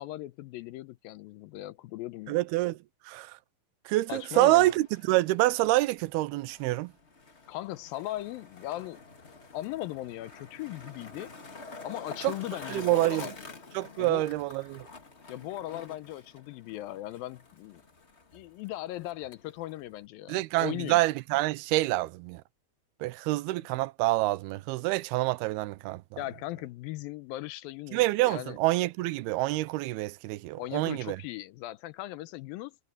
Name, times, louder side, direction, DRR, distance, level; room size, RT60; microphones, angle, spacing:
voice 1, 0.0-2.4 4.1-4.7 7.5-9.0 9.5-11.3 11.8-13.3 14.0-14.3 15.3-17.8 18.3-21.0 26.2-28.6 30.6-32.8, left 16 dB, 80° left, 2.3 m, -38 dB
voice 2, 2.3-2.8 3.1-3.4 3.9-6.9 12.2-12.3 12.7-13.3 13.7-14.9 20.3-22.4 23.0-26.0 27.9-31.2, right 18 dB, 90° right, 2.6 m, -27 dB
Skateboard, 4.5-20.1, left 3 dB, 30° left, 1.2 m, -48 dB
omnidirectional pair, 4.4 m